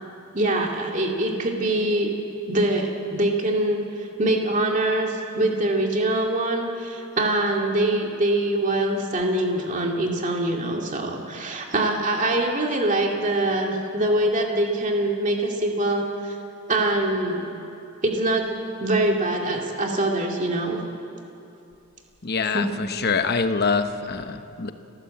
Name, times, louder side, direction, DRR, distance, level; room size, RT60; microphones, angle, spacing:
voice 1, 0.3-2.2 2.5-16.4 16.7-17.5 18.0-18.5 18.8-20.8 22.5-22.6, right 1 dB, 35° right, 1 dB, 2.4 m, -24 dB
voice 2, 22.2-24.7, left 4 dB, 45° left, 8 dB, 1.0 m, -25 dB
30.0 x 14.5 x 7.8 m, 2.7 s
head